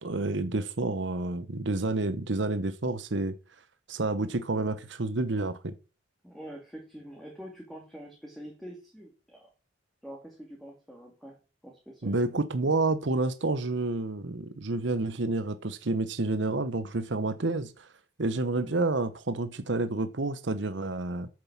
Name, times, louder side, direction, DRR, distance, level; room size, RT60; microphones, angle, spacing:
voice 1, 0.0-3.3 3.9-5.7 12.0-17.9 18.2-21.3, right 2 dB, 65° right, 0.9 m, -29 dB
voice 2, 6.2-9.5 10.0-12.2, equal, ahead, 2.3 m, -45 dB
9.7 x 7.6 x 7.2 m
head